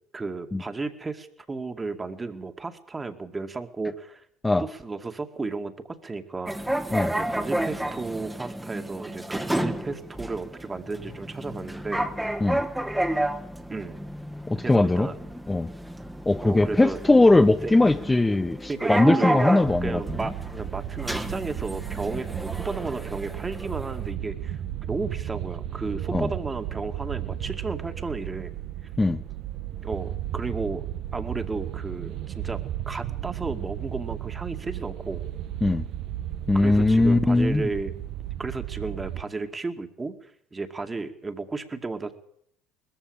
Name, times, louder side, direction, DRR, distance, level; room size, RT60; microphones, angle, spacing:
voice 1, 0.1-4.2 4.6-6.5 7.1-12.1 13.7-13.9 14.6-15.3 16.4-17.0 17.6-17.7 18.7-19.5 19.8-28.5 29.8-35.2 36.5-37.9 38.4-42.2, right 3 dB, 20° right, 7 dB, 2.4 m, -33 dB
sound 1, 6.5-24.0, right 1 dB, 5° right, 1.7 m, -31 dB
voice 2, 14.5-15.1 15.5-15.7 16.3-20.0 26.1-26.3 29.0-29.2 35.6-35.9 36.5-37.6, left 2 dB, 15° left, 7 dB, 1.0 m, -20 dB
sound 2, 19.6-39.2, right 12 dB, 60° right, 1.2 m, -34 dB
20.5 x 14.5 x 8.9 m, 0.67 s
hypercardioid pair, 75°, 0 cm